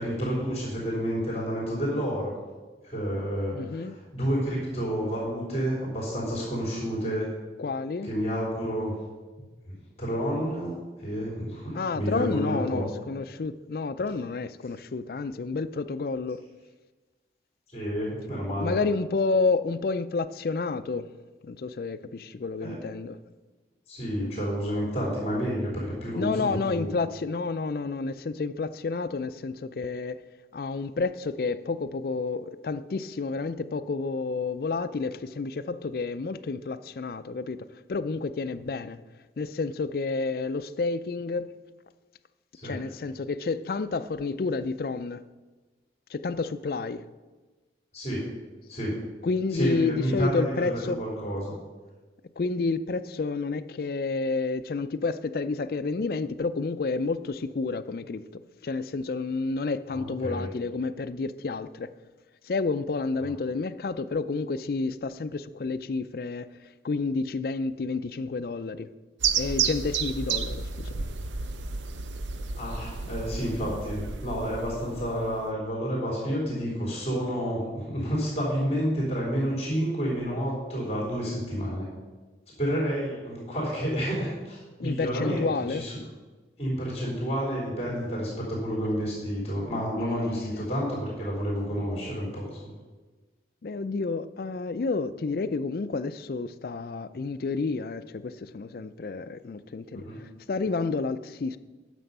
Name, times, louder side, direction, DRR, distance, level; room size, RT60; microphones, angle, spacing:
voice 1, 0.0-2.3 2.8-7.3 8.0-8.9 9.4-12.9 17.7-18.7 22.6-22.8 23.9-26.9 42.6-42.8 47.9-48.3 48.7-49.0 49.5-51.5 59.9-60.5 72.5-81.9 82.6-85.9 86.6-92.7 99.9-100.2, equal, 35° left, 3.2 m, -30 dB
voice 2, 3.5-3.9 7.6-8.1 11.7-16.4 18.6-21.1 21.4-23.2 26.2-30.2 30.5-37.6 37.9-39.0 39.4-41.5 42.6-45.2 46.1-47.0 49.2-51.0 52.4-61.9 62.4-68.9 69.4-71.1 84.8-85.9 90.0-90.6 93.6-101.6, left 4 dB, 55° left, 0.4 m, -30 dB
sound 1, 69.2-75.5, right 6 dB, 90° right, 0.6 m, -31 dB
9.4 x 6.8 x 5.4 m
head